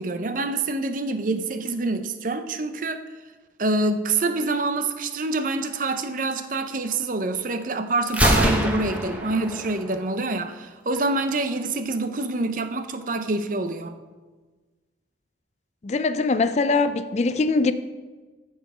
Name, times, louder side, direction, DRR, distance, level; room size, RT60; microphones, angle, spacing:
voice 1, 0.0-3.0 3.6-13.9, right 2 dB, 45° right, 0.7 m, -26 dB
Gunshot gunfire, 8.1-10.0, equal, 10° right, 1.1 m, -24 dB
voice 2, 15.8-17.7, left 3 dB, 35° left, 0.4 m, -22 dB
14.5 x 5.6 x 4.9 m
head